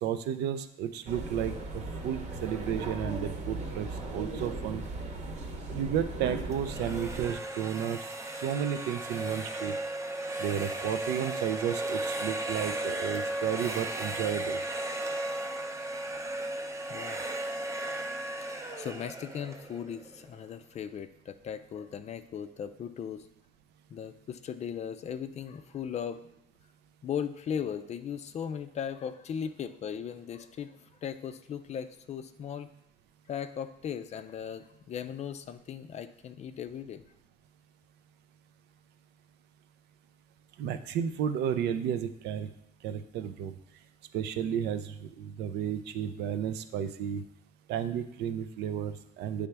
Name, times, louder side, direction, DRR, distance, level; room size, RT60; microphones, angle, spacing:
voice 1, 0.0-4.8 5.7-8.0 8.4-9.8 10.4-14.6 40.6-42.5 42.8-43.5 44.1-47.2 47.7-49.5, right 9 dB, 80° right, 10 dB, 0.5 m, -32 dB
sound 1, 1.1-7.3, right 2 dB, 45° right, 1.0 m, -37 dB
sound 2, 6.5-20.4, right 1 dB, 15° right, 0.6 m, -35 dB
voice 2, 16.9-17.2 18.4-23.3 23.9-26.2 27.0-32.7 33.3-37.0, left 8 dB, 40° left, 11 dB, 0.4 m, -38 dB
8.3 x 3.4 x 3.4 m, 0.79 s
cardioid pair, 110°, 17 cm